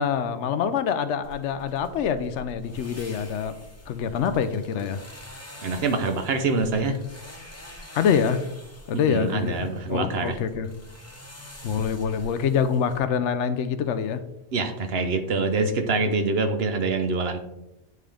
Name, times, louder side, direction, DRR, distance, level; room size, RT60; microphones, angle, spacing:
voice 1, 0.0-3.5 3.9-5.0 7.9-8.4 8.9-10.7 11.6-14.2, left 7 dB, 80° left, 11 dB, 0.9 m, -25 dB
sound 1, 1.2-13.0, left 1 dB, 15° left, 0.9 m, -45 dB
voice 2, 5.6-7.0 9.1-10.4 14.5-17.4, right 3 dB, 60° right, 7 dB, 0.9 m, -25 dB
9.2 x 3.7 x 3.4 m, 0.89 s
omnidirectional pair, 1.2 m